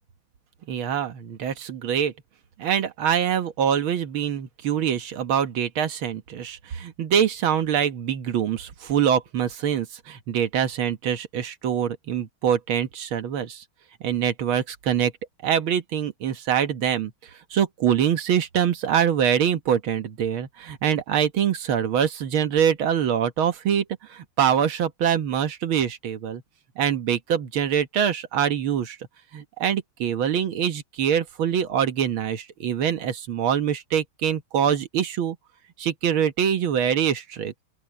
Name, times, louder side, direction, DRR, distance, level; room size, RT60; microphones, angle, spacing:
voice 1, 0.7-2.1 2.6-13.6 14.0-15.1 15.4-17.1 17.5-26.4 26.8-29.0 29.3-35.4 35.8-37.5, right 8 dB, 75° right, 2.0 m, -24 dB
open air
omnidirectional pair, 2.3 m